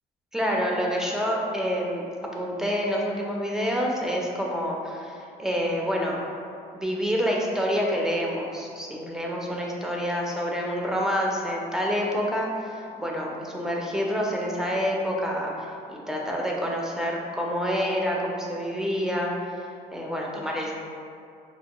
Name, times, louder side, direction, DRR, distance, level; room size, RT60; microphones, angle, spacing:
voice 1, 0.3-2.0 2.3-6.2 6.7-20.7, equal, 5° right, -2 dB, 0.5 m, -28 dB
4.3 x 2.1 x 2.9 m, 2.4 s
cardioid pair, 110°, 17 cm